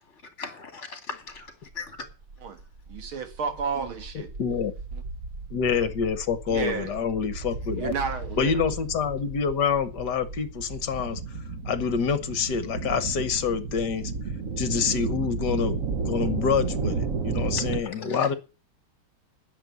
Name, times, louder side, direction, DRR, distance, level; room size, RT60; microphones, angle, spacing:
voice 1, 0.4-1.9 17.5-17.6 18.0-18.3, left 4 dB, 35° left, 2.6 m, -39 dB
sound 1, 1.3-1.4 1.7-17.8, right 4 dB, 45° right, 1.2 m, -33 dB
voice 2, 2.9-4.3 4.9-5.0 6.5-6.9 7.7-8.6, right 5 dB, 80° right, 2.4 m, -31 dB
voice 3, 4.4-4.7 5.5-7.9 8.4-11.2 11.7-14.1 14.6-15.8 16.1-18.3, left 6 dB, 60° left, 1.6 m, -26 dB
10.0 x 7.3 x 9.4 m
omnidirectional pair, 2.3 m